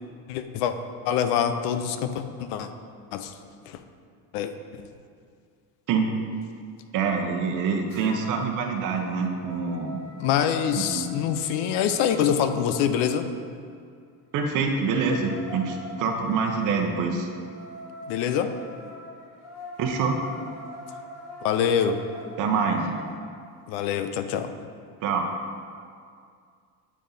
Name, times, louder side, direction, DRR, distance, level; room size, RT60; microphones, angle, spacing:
voice 1, 0.3-0.7 1.0-2.7 3.1-3.3 3.7-3.8 4.3-4.8 10.2-13.3 18.1-18.5 21.4-22.0 23.7-24.5, left 8 dB, 90° left, 9 dB, 0.6 m, -25 dB
voice 2, 6.9-10.0 10.8-11.1 14.3-17.3 19.8-20.2 22.4-22.9 25.0-25.3, right 5 dB, 55° right, 3 dB, 0.8 m, -26 dB
sound 1, 7.9-8.5 8.9-13.1 14.6-23.2, left 2 dB, 45° left, 1.1 m, -42 dB
8.4 x 4.1 x 3.8 m, 2.2 s
cardioid pair, 155°, 38 cm